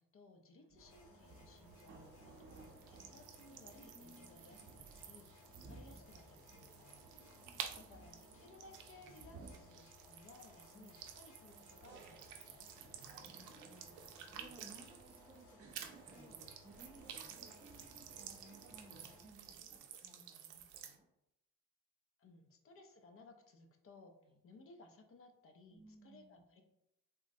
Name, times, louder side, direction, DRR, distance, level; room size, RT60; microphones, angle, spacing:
voice 1, 0.0-2.1 2.4-7.0 7.8-12.7 22.2-24.1 24.4-26.6, left 3 dB, 45° left, 4 dB, 0.5 m, -61 dB
voice 2, 0.5-1.0 3.8-4.7 7.2-8.6 9.3-9.6 10.7-11.0 13.0-21.1 24.2-24.4 25.7-26.4, right 2 dB, 15° right, 1 dB, 0.5 m, -62 dB
sound 1, 0.7-19.8, right 3 dB, 50° right, 0.7 m, -60 dB
sound 2, 0.8-19.2, left 3 dB, 80° left, 1.0 m, -64 dB
sound 3, 1.2-15.4 15.7-21.0, right 9 dB, 85° right, 0.5 m, -53 dB
3.6 x 2.0 x 2.6 m, 0.84 s
cardioid pair, 90°, 30 cm